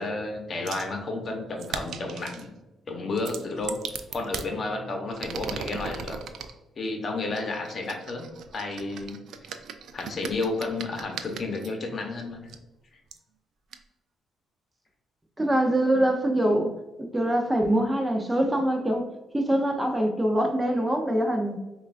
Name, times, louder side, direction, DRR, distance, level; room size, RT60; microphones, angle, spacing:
voice 1, 0.0-2.5 2.9-3.8 4.1-6.2 6.8-8.3 8.5-9.2 9.9-12.4, left 3 dB, 45° left, 3 dB, 0.8 m, -31 dB
sound 1, 0.7-0.9 1.6-2.5 3.2-4.5 5.1-6.5 7.3-11.7 12.5-12.6 13.1-13.2 13.7-13.8, right 6 dB, 70° right, 0.3 m, -38 dB
voice 2, 15.4-16.7 17.0-19.1 19.3-21.6, right 1 dB, 15° right, 2 dB, 0.6 m, -24 dB
5.4 x 2.3 x 2.4 m, 1.1 s
cardioid pair, 90°, 0 cm